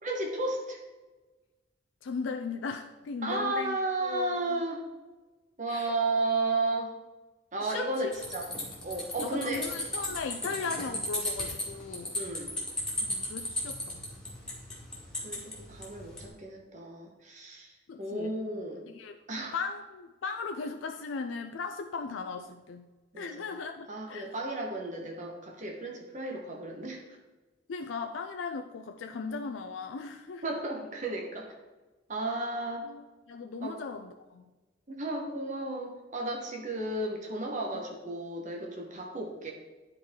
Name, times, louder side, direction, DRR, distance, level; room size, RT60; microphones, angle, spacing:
voice 1, 0.0-0.8 3.2-4.8 5.6-7.0 7.5-8.5 8.8-9.7 12.1-12.5 15.2-18.9 19.3-19.5 23.1-23.5 23.9-27.0 30.4-31.5 32.1-32.9 33.6-33.8 34.9-39.5, right 2 dB, 40° right, 0 dB, 1.1 m, -33 dB
voice 2, 2.0-4.6 5.7-5.9 7.6-8.1 9.2-12.2 13.0-14.0 17.9-18.3 18.9-19.2 19.5-22.9 23.2-24.3 27.7-30.4 32.8-34.4, left 4 dB, 90° left, 5 dB, 0.4 m, -37 dB
sound 1, 8.1-16.3, left 1 dB, 5° left, 1.9 m, -36 dB
11.0 x 4.5 x 3.7 m, 1.2 s
head